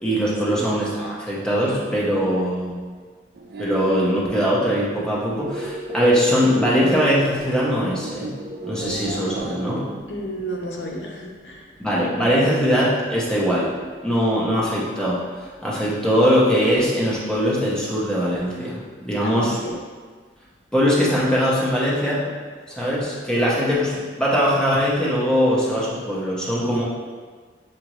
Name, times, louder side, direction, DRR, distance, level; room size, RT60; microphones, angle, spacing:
voice 1, 0.0-2.8 3.6-8.4 8.6-9.9 11.8-13.8 14.0-19.6 20.7-22.3 22.7-26.8, equal, 5° left, -7 dB, 0.8 m, -21 dB
sound 1, 3.4-9.9, right 1 dB, 60° right, 0.4 m, -34 dB
voice 2, 10.1-11.7 19.2-19.8, right 1 dB, 85° left, -1 dB, 0.6 m, -32 dB
6.1 x 2.6 x 3.0 m, 1.5 s
head